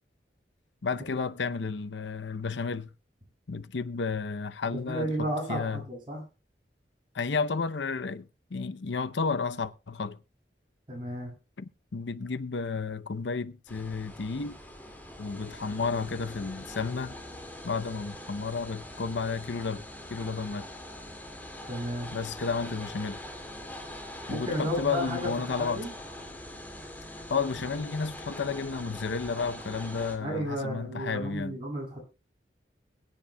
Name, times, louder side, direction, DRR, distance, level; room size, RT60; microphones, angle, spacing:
voice 1, 0.8-2.9 3.5-5.8 7.1-10.2 11.6-14.6 15.2-17.1 17.6-19.8 20.1-20.7 22.1-23.2 24.3-25.8 27.1-31.6, left 4 dB, 85° left, 0.7 m, -32 dB
voice 2, 4.7-6.2 10.9-11.3 21.6-22.1 24.3-25.3 25.6-26.0 30.2-32.0, equal, 25° right, 7.0 m, -33 dB
sound 1, 13.7-30.2, left 1 dB, 10° left, 2.1 m, -43 dB
22.0 x 9.9 x 2.2 m
head